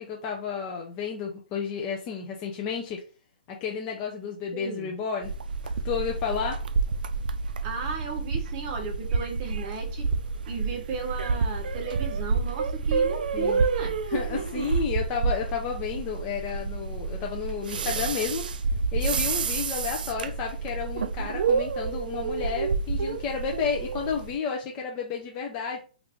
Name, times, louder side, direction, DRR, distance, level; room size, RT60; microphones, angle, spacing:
voice 1, 0.0-3.0 3.5-5.3 5.6-6.6 13.3-13.6 14.1-18.4 18.9-25.8, left 6 dB, 25° left, 0 dB, 0.4 m, -31 dB
voice 2, 4.5-4.9 7.6-10.1 10.5-14.0, right 5 dB, 30° right, 2 dB, 0.9 m, -35 dB
sound 1, 5.2-24.3, right 4 dB, 70° right, 0.4 m, -29 dB
3.0 x 2.5 x 3.4 m, 0.36 s
hypercardioid pair, 155°, 5 cm